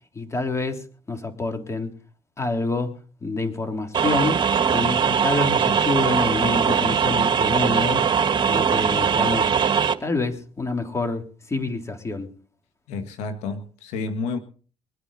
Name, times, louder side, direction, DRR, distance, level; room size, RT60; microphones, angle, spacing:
voice 1, 0.2-1.9 2.4-2.9 3.2-4.4 4.7-8.0 8.5-9.6 10.0-12.3, left 3 dB, 25° left, 3.5 m, -27 dB
sound 1, 3.9-9.9, right 7 dB, 45° right, 1.5 m, -21 dB
voice 2, 12.9-14.4, left 4 dB, 80° left, 1.7 m, -30 dB
24.0 x 9.6 x 4.2 m
supercardioid pair, 65°, 11 cm